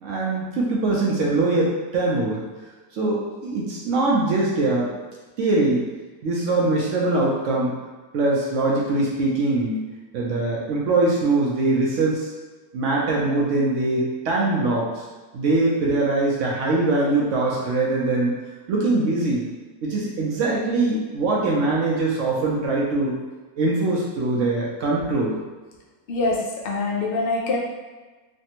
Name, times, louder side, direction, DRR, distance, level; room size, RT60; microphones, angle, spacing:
voice 1, 0.0-2.4 2.9-4.9 5.4-5.8 6.2-7.8 8.1-9.8 10.1-12.3 12.7-15.0 15.3-18.3 18.7-19.5 19.8-23.2 23.6-25.3, right 2 dB, 70° right, -4 dB, 0.8 m, -22 dB
voice 2, 26.1-27.6, left 3 dB, 85° left, -3 dB, 0.5 m, -24 dB
3.3 x 2.1 x 2.8 m, 1.3 s
omnidirectional pair, 1.7 m